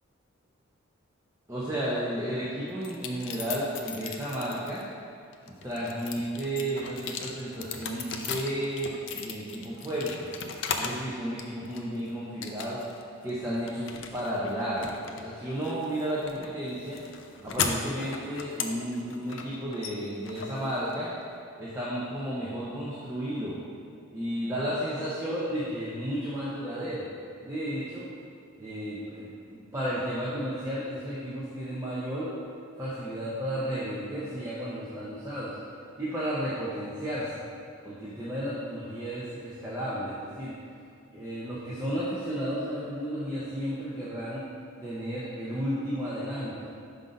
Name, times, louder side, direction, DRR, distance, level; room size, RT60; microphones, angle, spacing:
voice 1, 1.5-4.8 5.5-10.3 10.8-12.8 13.2-17.0 17.4-21.1 21.6-23.5 24.1-27.1 27.4-28.0 28.6-32.3 32.8-35.6 36.0-37.4 37.8-40.5 41.1-44.4 44.8-46.7, equal, 15° right, -9 dB, 0.7 m, -33 dB
sound 1, 2.8-4.8 5.3-11.1 11.4-12.0 12.4-13.0 13.3-21.2, left 6 dB, 60° left, 0.4 m, -37 dB
5.5 x 3.9 x 5.1 m, 2.4 s
head